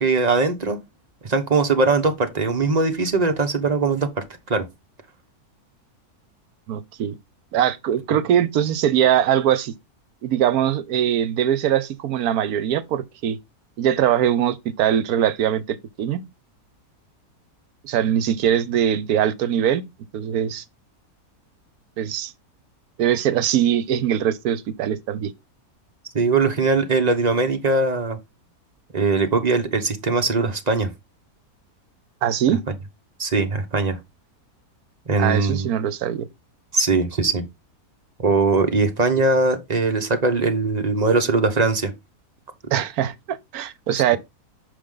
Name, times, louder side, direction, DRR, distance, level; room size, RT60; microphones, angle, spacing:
voice 1, 0.0-0.8 1.2-4.1 4.5-4.7 8.1-8.2 26.1-28.2 28.9-30.9 33.2-34.0 35.1-35.7 36.7-37.5 38.2-41.9 42.7-42.8 43.9-44.2, right 3 dB, 30° right, 1.0 m, -21 dB
voice 2, 6.7-7.2 7.5-9.7 10.2-13.4 13.8-16.2 17.8-19.8 20.1-20.6 22.0-22.3 23.0-25.3 32.2-32.6 35.2-36.3 42.7-44.2, right 10 dB, 75° right, 1.2 m, -21 dB
6.7 x 5.0 x 3.7 m
omnidirectional pair, 1.6 m